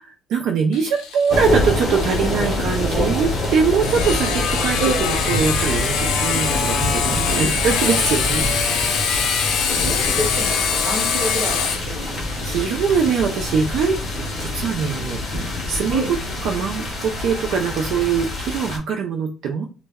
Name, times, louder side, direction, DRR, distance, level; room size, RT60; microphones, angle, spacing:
voice 1, 0.0-9.0 12.1-14.0 14.4-16.0 16.4-19.7, right 6 dB, 60° right, 2 dB, 0.3 m, -23 dB
Sawing, 0.7-16.2, left 6 dB, 80° left, 0.5 m, -25 dB
sound 1, 1.3-18.8, left 1 dB, 30° left, 0.6 m, -26 dB
voice 2, 9.8-12.6 15.9-16.1, right 2 dB, 35° right, -1 dB, 0.8 m, -27 dB
2.1 x 2.0 x 3.3 m, 0.33 s
cardioid pair, 180°, 0 cm